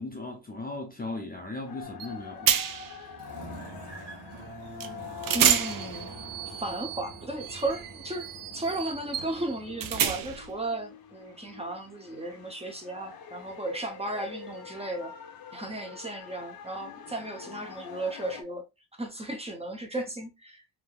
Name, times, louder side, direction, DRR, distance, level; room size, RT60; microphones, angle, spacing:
voice 1, 0.0-2.6, left 2 dB, 25° left, 0.5 m, -37 dB
sound 1, 1.7-18.4, left 8 dB, 65° left, 0.7 m, -46 dB
sound 2, 1.8-10.4, right 2 dB, 80° right, 1.3 m, -45 dB
sound 3, 2.0-2.1 2.5-3.0 4.8-4.9 5.2-10.5, right 9 dB, 60° right, 0.5 m, -29 dB
voice 2, 5.3-6.1 6.5-15.1 15.5-18.6 19.0-20.6, right 2 dB, 15° right, 0.6 m, -35 dB
3.4 x 2.7 x 2.2 m
wide cardioid pair, 155°, 39 cm